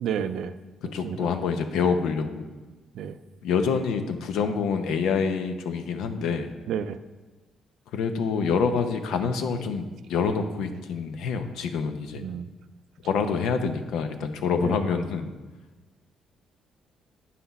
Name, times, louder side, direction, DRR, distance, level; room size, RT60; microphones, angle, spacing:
voice 1, 0.0-0.5 1.0-1.3 2.9-3.2 6.7-7.0 12.2-12.5 13.6-13.7 14.6-14.8, right 8 dB, 75° right, 11 dB, 0.3 m, -30 dB
voice 2, 0.9-2.5 3.4-6.5 7.9-12.2 13.0-15.3, left 5 dB, 85° left, 8 dB, 0.6 m, -26 dB
8.4 x 5.8 x 4.1 m, 1.2 s
cardioid pair, 90°, 0 cm